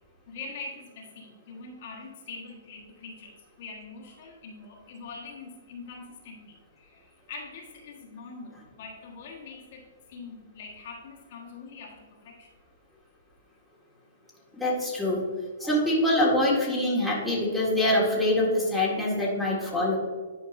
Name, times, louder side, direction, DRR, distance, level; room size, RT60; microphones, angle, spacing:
voice 1, 0.3-12.5, left 4 dB, 55° left, -2 dB, 1.5 m, -43 dB
voice 2, 14.5-15.2 15.6-20.0, left 1 dB, ahead, -7 dB, 1.7 m, -24 dB
10.5 x 4.6 x 2.6 m, 1.5 s
hypercardioid pair, 140°, 0 cm